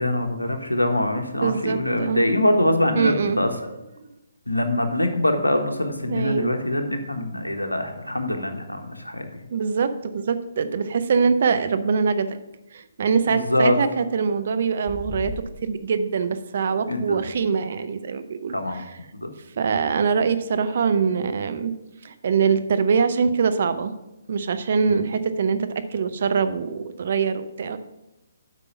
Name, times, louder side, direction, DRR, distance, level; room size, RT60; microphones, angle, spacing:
voice 1, 0.0-3.5 4.5-9.3 13.3-13.8 16.9-17.2 18.5-18.8 19.1-19.3 24.8-25.1, left 1 dB, 90° left, 5 dB, 1.2 m, -24 dB
voice 2, 1.4-2.2 2.9-3.4 6.1-6.5 9.5-12.4 12.7-18.9 19.6-21.7 22.0-23.9 24.3-27.8, right 5 dB, 50° right, 10 dB, 0.7 m, -23 dB
sound 1, 14.9-15.4, left 1 dB, 5° left, 1.6 m, -34 dB
8.3 x 5.4 x 5.5 m, 0.95 s
figure-of-eight pair, 135°, 0 cm